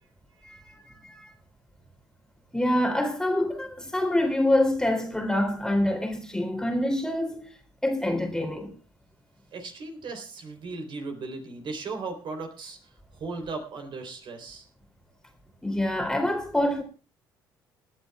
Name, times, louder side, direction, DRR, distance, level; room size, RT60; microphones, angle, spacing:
voice 1, 0.4-1.3 2.5-7.5 7.8-8.7 15.6-16.8, left 1 dB, 5° left, 2.9 m, -26 dB
voice 2, 9.5-12.8 13.1-14.6, right 3 dB, 50° right, 3.5 m, -37 dB
28.5 x 10.5 x 2.3 m
figure-of-eight pair, 50°, 11 cm